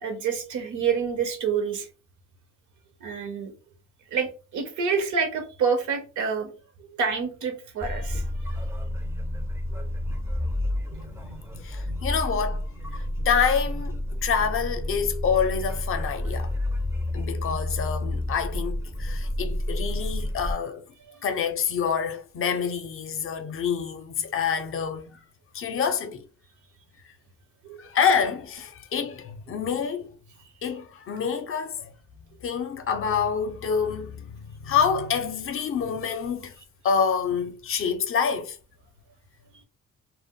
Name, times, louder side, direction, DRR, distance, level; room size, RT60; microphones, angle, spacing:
voice 1, 0.0-1.9 3.0-3.5 4.1-6.5 6.8-8.9 9.8-9.9 10.9-11.1 21.1-21.2 27.6-27.8, right 6 dB, 80° right, 0.7 m, -28 dB
sound 1, 7.8-20.5, left 1 dB, 10° right, 0.4 m, -30 dB
voice 2, 11.6-12.6 13.2-16.5 17.1-20.8 21.2-25.2 25.5-26.2 27.8-30.1 30.6-31.9 32.4-36.5 36.8-38.6, left 6 dB, 45° left, 0.5 m, -27 dB
2.1 x 2.0 x 3.5 m
cardioid pair, 115°, 30 cm